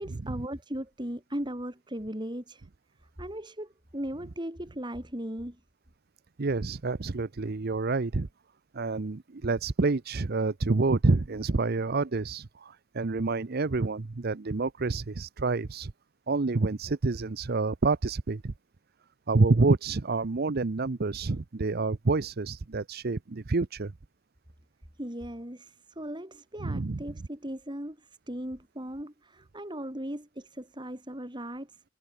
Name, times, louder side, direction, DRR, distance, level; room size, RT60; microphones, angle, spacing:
voice 1, 0.0-2.7 3.2-5.6 25.0-31.8, right 1 dB, 20° right, 3.7 m, -38 dB
voice 2, 6.4-8.3 8.7-15.9 16.3-18.5 19.3-23.9 26.6-27.0, right 3 dB, 45° right, 0.7 m, -28 dB
head